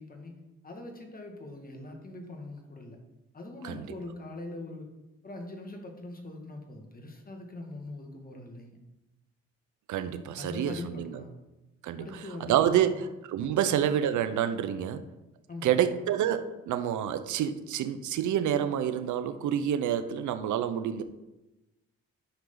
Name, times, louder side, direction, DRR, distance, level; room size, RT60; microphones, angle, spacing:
voice 1, 0.0-3.0 3.3-4.9 5.2-8.8 10.4-11.3 12.0-13.1 13.5-13.7 15.5-15.8, left 2 dB, 30° left, 2 dB, 2.0 m, -42 dB
voice 2, 9.9-11.2 11.8-12.1 12.4-15.0 15.6-21.0, right 10 dB, 75° right, 11 dB, 0.8 m, -28 dB
10.5 x 6.4 x 3.9 m, 0.99 s
cardioid pair, 90°, 30 cm